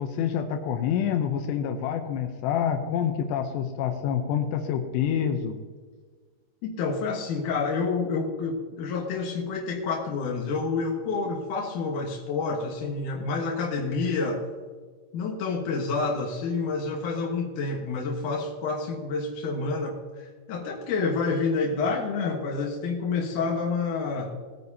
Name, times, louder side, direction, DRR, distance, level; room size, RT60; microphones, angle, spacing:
voice 1, 0.0-5.6, left 8 dB, 85° left, 5 dB, 3.0 m, -27 dB
voice 2, 6.6-14.4 15.1-24.4, left 4 dB, 60° left, -1 dB, 2.3 m, -28 dB
19.0 x 9.5 x 2.8 m, 1.5 s
omnidirectional pair, 4.9 m